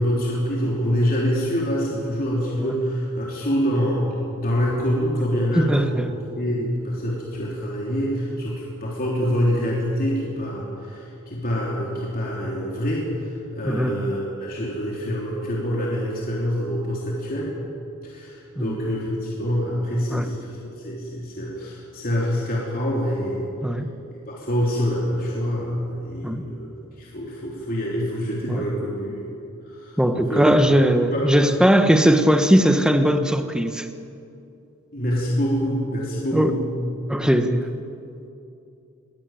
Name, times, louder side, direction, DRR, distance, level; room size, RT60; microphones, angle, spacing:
voice 1, 0.0-4.1 4.3-17.5 18.0-20.6 20.8-23.5 24.3-26.7 27.0-29.3 29.6-30.7 31.1-31.3 34.9-36.7, equal, 40° left, -4 dB, 3.4 m, -26 dB
voice 2, 5.5-6.1 13.6-13.9 18.6-18.7 20.1-20.2 23.6-23.9 26.2-26.4 28.5-28.6 30.0-33.9 36.3-36.5 37.1-37.7, equal, 5° right, 7 dB, 1.2 m, -19 dB
22.0 x 17.5 x 9.2 m, 2.6 s
head